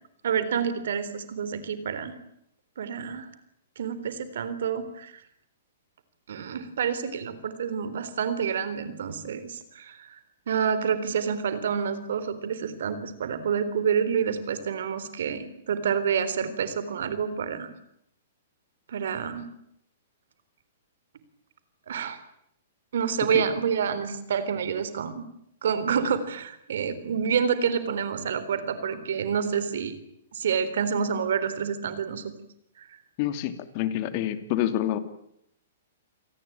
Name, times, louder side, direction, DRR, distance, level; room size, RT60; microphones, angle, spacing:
voice 1, 0.2-2.1 2.8-3.3 3.8-5.1 6.3-10.2 10.5-17.7 18.9-19.5 21.9-22.2 22.9-25.2 25.6-30.0 30.3-32.3 32.8-32.9, right 7 dB, 70° right, 13 dB, 3.8 m, -28 dB
voice 2, 33.2-35.0, left 12 dB, 45° left, 11 dB, 2.7 m, -27 dB
27.5 x 19.5 x 8.9 m, 0.75 s
hypercardioid pair, 120°, 0 cm